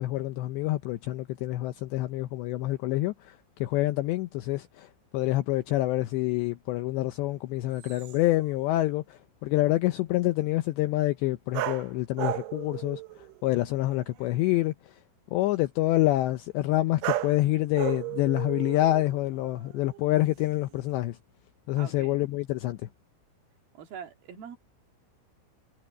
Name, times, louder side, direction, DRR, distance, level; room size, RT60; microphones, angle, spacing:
voice 1, 0.0-13.0 13.4-14.7 15.3-21.2 21.7-22.8, left 16 dB, 80° left, 2.5 m, -27 dB
sound 1, 7.8-8.9 11.5-13.4 13.7-14.3 17.0-17.5 17.7-20.0 20.4-20.9, right 15 dB, 75° right, 3.4 m, -35 dB
voice 2, 21.8-22.2 23.7-24.6, right 8 dB, 55° right, 3.3 m, -43 dB
omnidirectional pair, 5.8 m